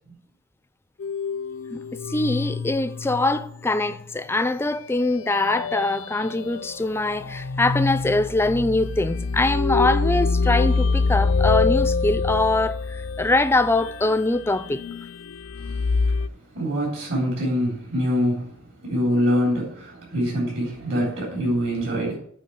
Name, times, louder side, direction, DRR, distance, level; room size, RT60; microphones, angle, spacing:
sound 1, 1.0-3.6 3.9-4.0 5.0-16.3, left 4 dB, 75° left, 0.4 m, -26 dB
voice 1, 1.7-14.8, left 2 dB, 10° left, 0.4 m, -23 dB
voice 2, 16.5-18.5 18.8-22.2, equal, 65° right, 3.7 m, -24 dB
8.4 x 4.5 x 7.2 m
head